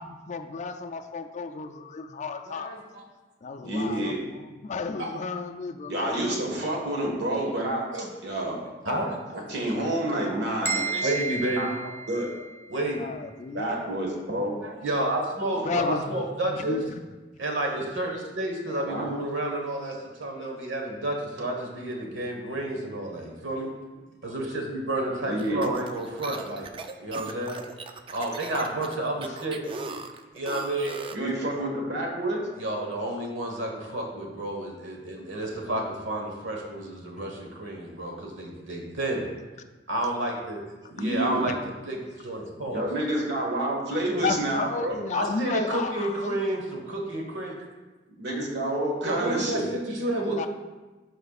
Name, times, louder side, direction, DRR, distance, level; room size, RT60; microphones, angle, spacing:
voice 1, 0.0-2.8 3.4-6.2 12.8-13.7 15.7-17.0 29.3-29.4 33.8-33.9 41.5-41.6 44.2-46.9 50.3-50.5, left 4 dB, 40° left, 7 dB, 0.4 m, -33 dB
voice 2, 2.4-3.0 5.0-5.1 7.9-8.1 8.8-9.4 10.6-11.7 12.7-13.1 14.6-16.8 17.4-23.7 24.2-26.7 27.0-27.6 28.1-29.6 30.3-31.0 32.6-39.3 39.9-40.6 41.0-41.5 41.8-42.8 45.1-47.5 49.0-50.4, right 1 dB, 85° right, 1 dB, 1.3 m, -30 dB
voice 3, 3.6-4.3 5.9-7.8 8.2-8.6 9.5-11.1 11.5-11.7 12.1-12.3 13.5-14.6 15.6-15.7 18.7-19.1 25.2-25.6 31.1-32.4 40.9-41.5 42.7-45.0 48.1-49.6, right 1 dB, 65° right, 0 dB, 1.5 m, -28 dB
sound 1, 10.6-12.7, right 3 dB, 15° left, 0.9 m, -32 dB
sound 2, 25.4-31.3, right 4 dB, 30° right, 0.3 m, -39 dB
11.5 x 4.4 x 2.4 m, 1.2 s
head